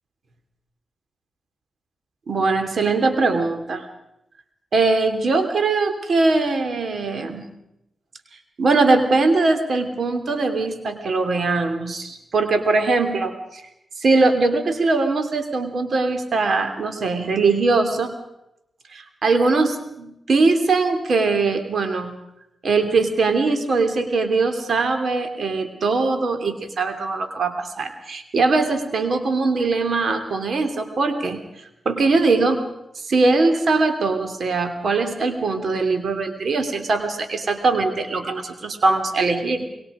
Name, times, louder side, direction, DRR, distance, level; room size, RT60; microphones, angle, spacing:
voice 1, 2.3-3.8 4.7-7.5 8.6-13.6 14.0-18.1 18.9-22.2 22.6-31.4 31.8-32.6 32.9-39.7, right 3 dB, 70° right, 8 dB, 3.0 m, -21 dB
25.0 x 22.0 x 5.1 m, 0.84 s
supercardioid pair, 40°, 0 cm